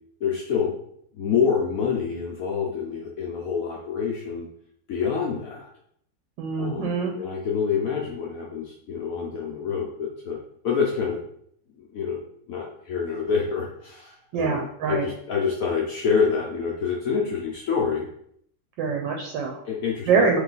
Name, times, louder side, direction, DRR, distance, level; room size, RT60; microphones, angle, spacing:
voice 1, 0.2-0.7 1.1-4.5 4.9-5.7 6.6-10.4 10.6-11.2 11.8-12.2 12.5-18.1 19.7-20.3, left 6 dB, 75° left, -2 dB, 0.7 m, -27 dB
voice 2, 6.4-7.1 14.3-15.1 18.8-19.6 20.1-20.4, right 5 dB, 80° right, 1 dB, 1.3 m, -24 dB
3.1 x 3.0 x 3.9 m, 0.67 s
omnidirectional pair, 2.1 m